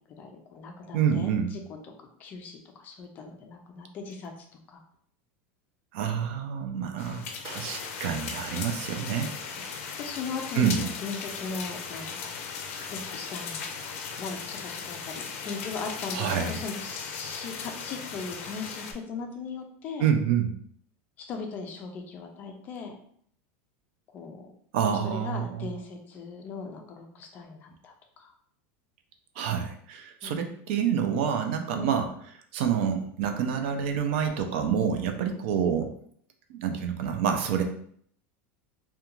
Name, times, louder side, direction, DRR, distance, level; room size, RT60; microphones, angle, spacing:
voice 1, 0.2-1.3 2.2-4.3 4.7-4.8 6.8-7.2 10.0-10.7 11.0-12.3 12.9-20.1 21.2-23.0 24.1-24.5 25.0-28.3 30.2-30.5 31.7-32.0, left 4 dB, 25° left, 3 dB, 0.3 m, -39 dB
voice 2, 0.9-1.5 5.9-9.3 10.5-10.9 16.1-16.6 20.0-20.5 24.7-25.7 29.4-32.1 32.5-35.9 36.5-37.6, right 7 dB, 60° right, 6 dB, 0.4 m, -27 dB
sound 1, 7.0-18.9, left 6 dB, 85° left, 0.4 m, -37 dB
2.4 x 2.2 x 2.9 m, 0.62 s
supercardioid pair, 170°, 7 cm